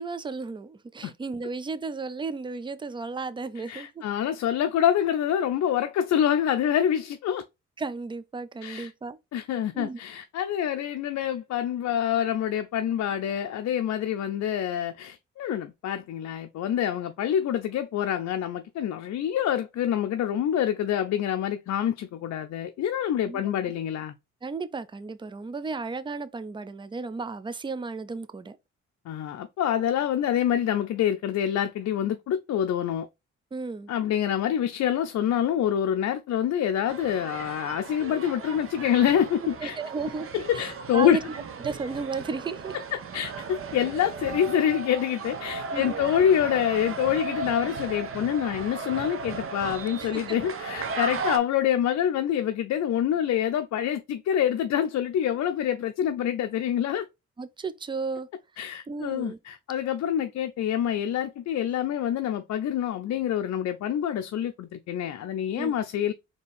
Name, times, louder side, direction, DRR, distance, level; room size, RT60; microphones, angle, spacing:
voice 1, 0.0-4.0 7.8-9.2 9.7-10.0 23.3-23.4 24.4-28.6 33.5-33.9 39.6-40.7 40.9-42.8 45.7-46.0 50.0-50.4 57.4-58.3 58.9-59.4 65.6-65.8, right 4 dB, 15° right, 0.4 m, -34 dB
voice 2, 3.7-7.4 8.6-8.9 9.3-24.1 29.1-33.1 33.9-39.8 40.3-41.2 43.1-57.1 58.6-66.1, left 10 dB, 65° left, 0.5 m, -26 dB
sound 1, 36.9-51.4, right 5 dB, 45° right, 0.8 m, -36 dB
4.3 x 2.9 x 3.4 m
cardioid pair, 90°, 29 cm